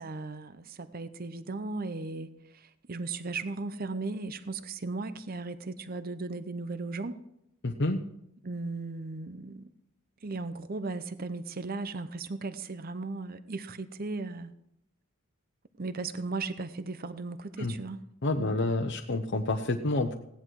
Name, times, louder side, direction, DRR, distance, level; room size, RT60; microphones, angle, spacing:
voice 1, 0.0-7.2 8.4-9.7 10.2-14.5 15.8-18.1 18.4-18.6, right 3 dB, 45° right, 12 dB, 0.7 m, -36 dB
voice 2, 7.6-8.0 17.6-17.7 18.2-20.1, left 2 dB, 55° left, 3 dB, 0.8 m, -28 dB
16.5 x 10.0 x 4.7 m, 0.79 s
head